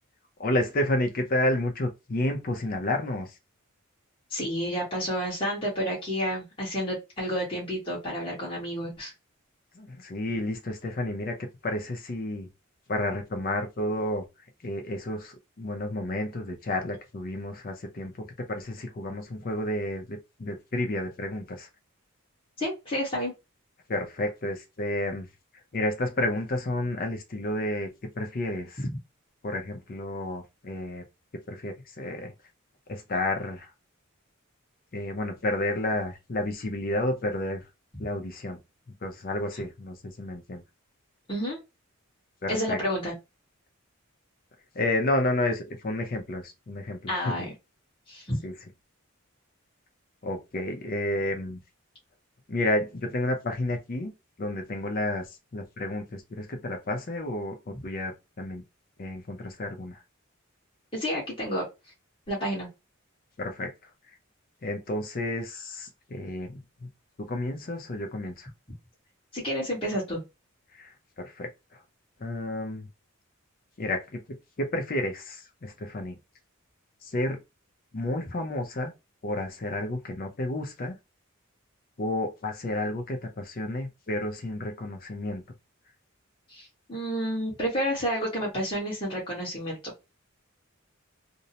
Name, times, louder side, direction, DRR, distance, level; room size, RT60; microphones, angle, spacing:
voice 1, 0.4-3.4 9.7-12.5 12.9-14.3 14.6-21.7 23.9-25.3 25.7-27.9 28.2-28.9 29.4-31.0 31.5-32.3 32.9-33.7 34.9-37.6 38.0-38.6 39.0-40.6 42.4-42.8 44.7-47.3 48.4-48.5 50.2-51.6 52.5-54.1 54.4-58.6 59.0-60.0 63.4-64.2 64.6-66.9 67.2-68.5 70.7-71.8 72.2-72.9 73.8-76.2 77.0-77.4 77.9-78.9 79.2-81.0 82.0-85.4, left 1 dB, 45° left, 0.6 m, -31 dB
voice 2, 4.3-9.1 22.6-23.3 41.3-41.6 42.5-43.1 47.1-47.5 48.1-48.4 60.9-61.6 62.3-62.7 69.3-70.2 86.5-89.8, equal, 25° left, 1.1 m, -30 dB
2.6 x 2.1 x 2.7 m
head